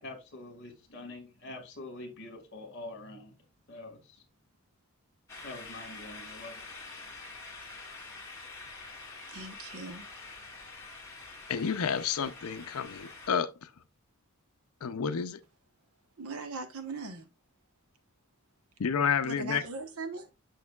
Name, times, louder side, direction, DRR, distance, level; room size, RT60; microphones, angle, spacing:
voice 1, 0.0-3.4 3.7-4.2 5.4-6.7, left 2 dB, 55° left, 1.8 m, -45 dB
sound 1, 5.3-13.3, left 3 dB, 10° left, 1.9 m, -46 dB
voice 2, 9.3-10.1 16.2-17.3 19.2-20.3, right 3 dB, 75° right, 1.0 m, -40 dB
voice 3, 11.5-13.7 14.8-15.4 18.8-19.6, left 7 dB, 80° left, 0.5 m, -30 dB
6.5 x 6.3 x 2.3 m
head